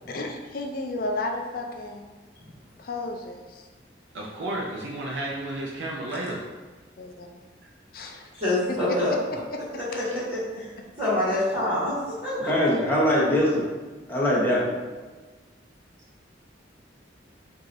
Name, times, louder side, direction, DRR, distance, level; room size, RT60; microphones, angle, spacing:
voice 1, 0.1-2.1 2.8-3.6 7.0-7.3 7.9-9.6, left 2 dB, 50° left, 2 dB, 0.4 m, -33 dB
voice 2, 4.1-6.4, right 1 dB, 80° right, -3 dB, 0.5 m, -32 dB
voice 3, 8.4-9.1 9.7-10.7 11.0-12.7, left 1 dB, 30° right, -13 dB, 1.3 m, -26 dB
voice 4, 12.5-13.6 14.1-14.7, left 1 dB, 10° left, -6 dB, 0.8 m, -22 dB
4.7 x 2.6 x 2.6 m, 1.3 s
head